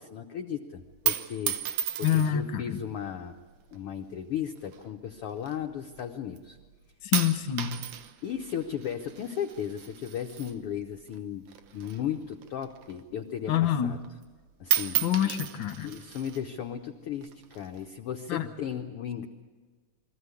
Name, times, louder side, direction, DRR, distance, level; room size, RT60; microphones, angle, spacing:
voice 1, 0.0-3.3 3.7-6.6 8.2-11.5 11.7-14.0 14.6-15.0 15.8-19.3, left 9 dB, 90° left, 5 dB, 1.2 m, -35 dB
sound 1, 0.8-2.5 3.4-3.8 4.6-6.0 6.4-6.8 7.1-11.2 11.5-13.2 13.5-13.6 14.0-14.4 14.6-16.4 17.2-17.8, right 10 dB, 70° right, 2.4 m, -33 dB
voice 2, 2.0-2.8 7.0-7.8 13.5-14.0 15.0-15.9 18.3-18.5, left 10 dB, 60° left, 8 dB, 1.2 m, -26 dB
23.0 x 15.0 x 9.7 m, 1.4 s
omnidirectional pair, 3.9 m